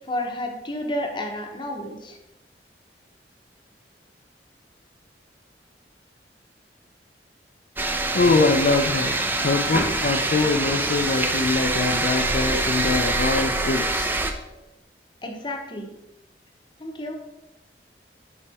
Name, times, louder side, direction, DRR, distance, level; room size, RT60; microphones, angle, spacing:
voice 1, 0.1-2.2 15.2-15.9 16.8-17.1, left 1 dB, 25° left, 2 dB, 0.8 m, -31 dB
sound 1, 7.8-14.3, right 2 dB, 10° right, 0.4 m, -25 dB
voice 2, 8.1-14.1, left 3 dB, 50° left, 3 dB, 0.4 m, -23 dB
5.5 x 5.3 x 4.1 m, 0.97 s
head